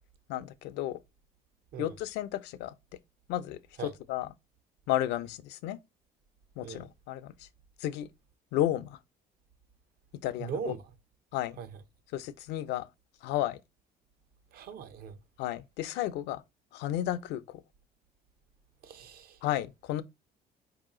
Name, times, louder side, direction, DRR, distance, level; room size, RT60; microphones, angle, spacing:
voice 1, 0.3-1.0 1.8-2.7 3.3-4.3 4.9-5.8 6.6-7.5 7.8-8.1 8.5-9.0 10.2-10.7 11.3-11.6 12.1-12.9 13.2-13.6 15.4-16.4 16.7-17.6 19.4-20.0, left 13 dB, 85° left, 0.5 m, -33 dB
voice 2, 10.4-10.9 11.6-11.7 14.5-15.2 18.8-19.4, right 6 dB, 65° right, 0.7 m, -40 dB
4.7 x 2.8 x 3.7 m
cardioid pair, 110°, 17 cm